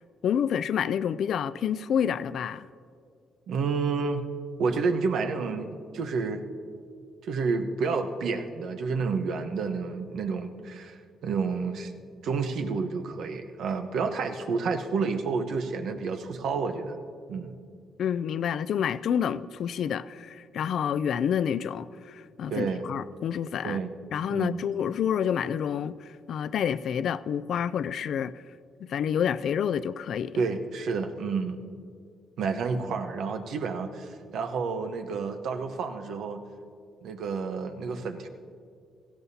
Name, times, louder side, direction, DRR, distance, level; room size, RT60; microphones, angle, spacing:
voice 1, 0.2-2.7 18.0-23.8 24.1-28.3 28.8-30.4, left 8 dB, 65° left, 0.3 m, -28 dB
voice 2, 3.5-4.2 4.6-6.4 7.2-11.9 12.2-17.0 17.3-17.6 22.5-22.8 23.6-23.9 24.3-24.7 30.3-31.6 32.4-36.4 37.0-38.3, right 4 dB, 75° right, 1.0 m, -30 dB
17.0 x 15.0 x 2.8 m
cardioid pair, 90°, 0 cm